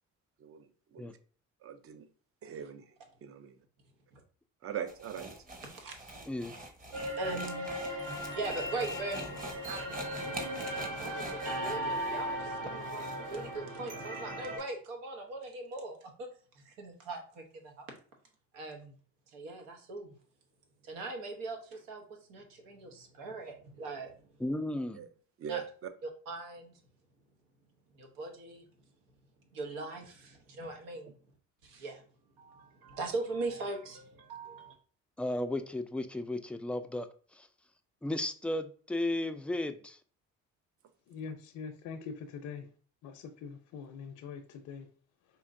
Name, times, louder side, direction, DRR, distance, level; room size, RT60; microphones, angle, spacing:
voice 1, 0.4-1.1 1.6-2.1 2.4-2.9 3.2-3.6 4.6-5.3 25.0-25.1 25.4-25.6, right 9 dB, 45° right, 0.6 m, -41 dB
sound 1, 4.9-13.5, right 2 dB, 25° right, 1.0 m, -46 dB
voice 2, 5.6-6.0 7.1-7.9 8.3-10.1 10.7-16.3 16.5-17.8 18.5-18.9 19.3-20.1 20.8-22.0 22.3-24.2 25.5-25.6 26.0-26.8 27.9-28.6 29.5-31.1 31.6-32.0 32.4-34.8, right 3 dB, 90° right, 1.0 m, -40 dB
sound 2, 6.9-14.6, equal, 65° right, 1.1 m, -37 dB
voice 3, 24.4-25.0 35.2-37.1 37.3-37.5 38.0-40.0, left 1 dB, 5° left, 0.3 m, -34 dB
voice 4, 41.1-42.7 43.0-44.9, left 6 dB, 65° left, 0.6 m, -43 dB
4.5 x 2.8 x 2.6 m
supercardioid pair, 80°, 32 cm